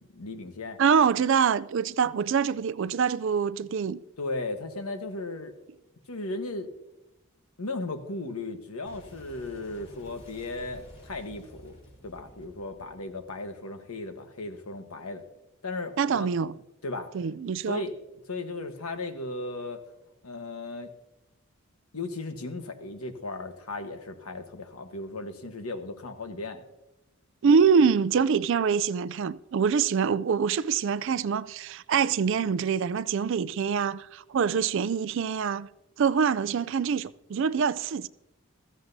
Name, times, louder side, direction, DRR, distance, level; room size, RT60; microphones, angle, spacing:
voice 1, 0.1-0.8 4.2-5.5 6.1-6.7 7.6-11.8 12.0-15.2 15.6-16.3 16.8-17.1 17.7-17.9 18.3-19.8 20.2-20.9 21.9-26.6, left 2 dB, 85° left, 1.2 m, -36 dB
voice 2, 0.8-4.0 16.0-16.5 17.1-17.8 27.4-35.7 36.0-38.1, right 6 dB, 60° right, 0.3 m, -25 dB
Boom, 8.8-14.1, equal, 30° left, 3.7 m, -51 dB
15.5 x 14.0 x 2.7 m
head